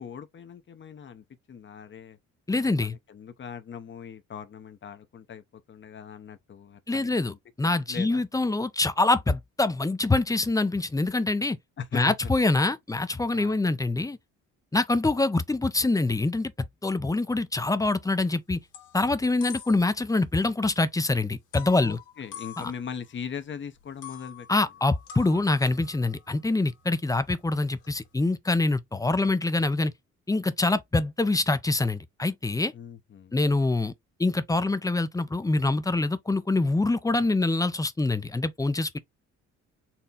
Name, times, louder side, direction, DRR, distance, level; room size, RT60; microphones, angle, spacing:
voice 1, 0.0-2.2 2.6-7.4 7.6-8.3 11.8-12.3 13.3-13.6 21.8-24.7 32.7-33.3, left 7 dB, 40° left, 0.8 m, -40 dB
voice 2, 2.5-3.0 6.9-11.6 11.9-14.2 14.7-16.5 16.8-18.6 18.9-22.0 22.6-22.7 24.5-29.9 30.3-32.7 33.3-33.9 34.2-39.0, left 2 dB, 10° left, 0.5 m, -25 dB
sound 1, 18.0-18.3 18.6-20.1 20.3-20.4 21.5-23.4 23.8-28.2, left 8 dB, 85° left, 1.4 m, -46 dB
4.3 x 2.2 x 3.8 m
cardioid pair, 90°, 30 cm